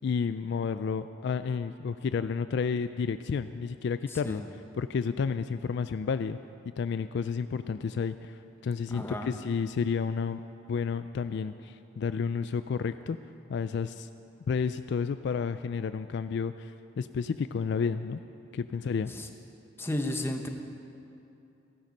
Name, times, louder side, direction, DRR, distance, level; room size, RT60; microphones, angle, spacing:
voice 1, 0.0-4.4 4.7-6.4 6.8-10.4 10.7-13.2 13.5-14.1 14.5-16.7 17.0-18.2 18.5-19.1, left 5 dB, 55° left, 12 dB, 0.3 m, -31 dB
voice 2, 8.9-9.3 19.1-19.3 19.8-20.5, left 1 dB, 10° left, 4 dB, 0.9 m, -33 dB
15.0 x 13.0 x 5.3 m, 2.7 s
head